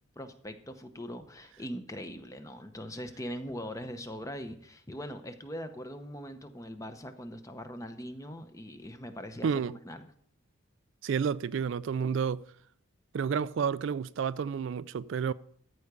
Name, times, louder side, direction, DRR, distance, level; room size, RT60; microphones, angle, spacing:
voice 1, 0.2-10.0, equal, 15° left, 0.7 m, -41 dB
voice 2, 9.4-9.7 11.0-12.4 13.1-15.3, right 6 dB, 60° right, 0.3 m, -30 dB
13.5 x 4.8 x 6.7 m
head